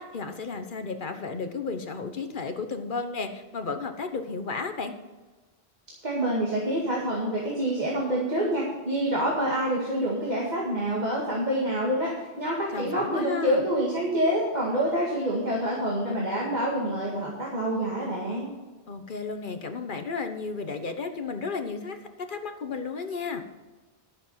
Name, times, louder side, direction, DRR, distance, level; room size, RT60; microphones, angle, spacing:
voice 1, 0.0-5.0 12.7-13.6 18.9-22.0 22.3-23.4, left 4 dB, 55° left, 7 dB, 1.2 m, -33 dB
voice 2, 6.0-18.5, right 1 dB, 45° right, -4 dB, 2.2 m, -27 dB
11.5 x 7.2 x 5.6 m, 1.3 s
omnidirectional pair, 1.0 m